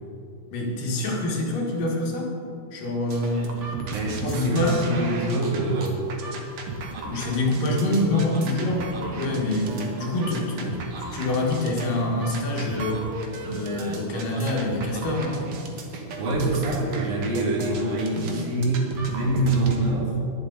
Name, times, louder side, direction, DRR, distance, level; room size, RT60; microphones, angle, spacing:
voice 1, 0.5-2.4 2.7-3.6 4.2-4.9 7.1-8.9 9.2-13.1 13.4-15.5, left 2 dB, 75° left, -1 dB, 3.3 m, -26 dB
sound 1, 3.1-19.8, right 3 dB, 60° right, 1.6 m, -35 dB
voice 2, 3.9-6.0 15.8-15.9 16.2-20.2, right 2 dB, 90° right, -4 dB, 4.4 m, -25 dB
22.0 x 7.4 x 4.0 m, 2.6 s
omnidirectional pair, 4.0 m